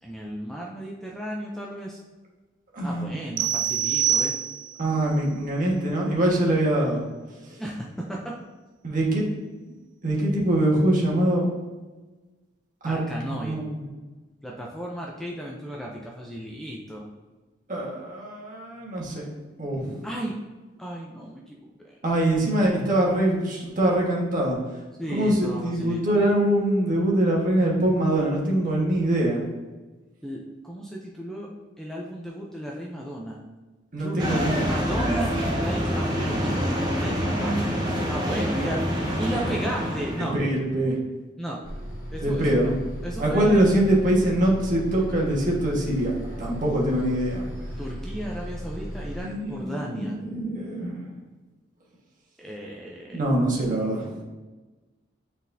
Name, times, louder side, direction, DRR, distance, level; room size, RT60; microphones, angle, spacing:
voice 1, 0.0-2.0 2.8-4.3 7.6-8.3 12.9-13.6 14.4-17.1 20.0-20.4 20.8-22.0 25.0-26.1 30.2-31.5 31.8-33.4 34.0-37.7 38.1-38.8 39.2-40.4 41.4-41.6 42.1-42.7 43.0-43.7 47.8-50.2 52.4-53.2, right 1 dB, ahead, -3 dB, 0.5 m, -34 dB
voice 2, 2.7-3.2 4.8-7.0 8.8-9.3 10.0-11.5 12.8-13.7 17.7-19.3 19.6-20.1 22.0-24.6 25.1-29.4 33.9-34.7 40.3-41.0 42.2-42.7 43.2-46.1 46.4-47.5 49.2-50.9 53.1-54.2, right 1 dB, 45° right, -3 dB, 1.5 m, -23 dB
sound 1, 3.4-4.9, right 9 dB, 70° right, 0.4 m, -25 dB
sound 2, 34.2-40.4, equal, 20° right, 1.0 m, -26 dB
Bus, 41.6-49.2, equal, 45° left, 1.6 m, -36 dB
8.4 x 4.1 x 2.7 m, 1.2 s
head